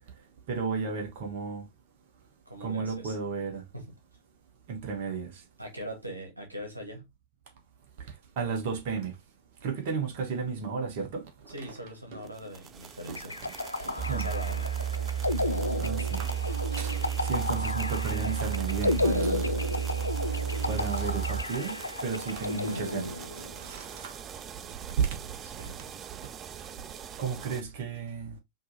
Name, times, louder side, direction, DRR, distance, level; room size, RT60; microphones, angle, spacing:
voice 1, 0.5-1.6 2.6-3.6 4.7-5.3 8.4-9.1 9.6-11.2 13.1-13.2 13.5-13.6 14.1-14.3 15.8-16.3 16.7-19.5 20.5-24.2 25.0-25.1 27.2-28.3, right 5 dB, 50° right, 1.3 m, -33 dB
voice 2, 2.4-3.2 3.7-3.9 5.6-7.1 11.5-13.3 14.0-14.9 25.4-25.8, equal, 85° right, 1.4 m, -41 dB
sound 1, 12.2-27.6, right 8 dB, 25° right, 0.4 m, -44 dB
sound 2, 13.1-23.6, left 2 dB, 80° left, 0.3 m, -33 dB
sound 3, 14.0-21.4, right 9 dB, ahead, 1.0 m, -32 dB
5.3 x 2.9 x 2.7 m
figure-of-eight pair, 90°, 0 cm